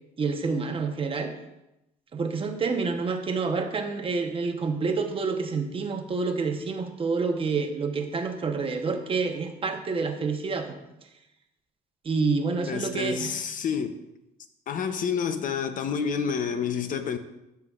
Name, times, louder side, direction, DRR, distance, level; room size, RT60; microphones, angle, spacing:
voice 1, 0.2-1.3 2.1-10.8 12.0-13.3, right 4 dB, 35° right, 0.9 m, -28 dB
voice 2, 12.7-13.9 14.7-17.2, left 6 dB, 50° left, 0.7 m, -29 dB
13.0 x 5.8 x 2.4 m
cardioid pair, 110°, 17 cm